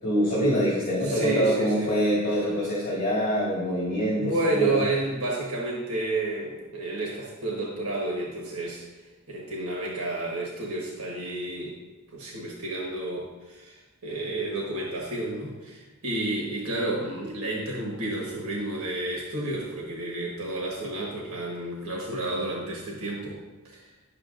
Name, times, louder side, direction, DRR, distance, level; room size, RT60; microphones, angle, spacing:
voice 1, 0.0-4.8, equal, 35° left, -9 dB, 2.4 m, -25 dB
voice 2, 1.0-1.9 4.2-8.8 9.3-11.8 12.1-23.4 23.6-23.9, right 2 dB, 85° right, -2 dB, 1.4 m, -31 dB
10.5 x 6.2 x 2.5 m, 1.2 s
head